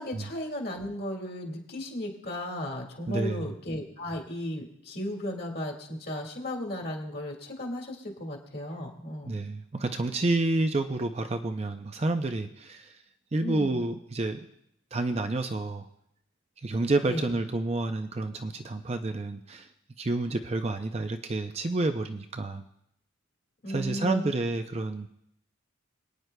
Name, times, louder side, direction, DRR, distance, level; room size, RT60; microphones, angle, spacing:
voice 1, 0.0-9.3 13.4-13.8 17.0-17.4 23.6-24.3, left 1 dB, 45° left, 2 dB, 1.9 m, -35 dB
voice 2, 3.1-3.5 9.2-12.9 13.3-14.5 14.9-15.9 16.6-19.7 20.0-22.6 23.7-25.1, right 2 dB, 30° right, 6 dB, 0.5 m, -29 dB
26.5 x 9.4 x 2.2 m, 0.77 s
head